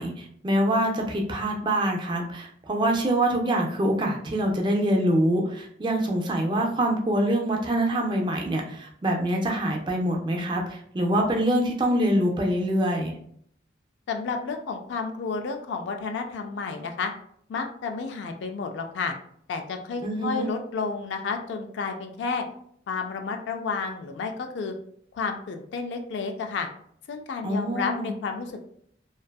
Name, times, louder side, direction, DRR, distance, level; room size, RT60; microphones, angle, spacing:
voice 1, 0.0-13.1 20.0-20.5 27.4-28.1, right 1 dB, 25° right, 1 dB, 0.4 m, -25 dB
voice 2, 14.1-17.1 17.5-19.1 19.5-22.4 22.9-24.7 25.1-26.7 27.1-28.6, left 4 dB, 75° left, 4 dB, 0.3 m, -31 dB
2.5 x 2.3 x 2.2 m, 0.66 s
head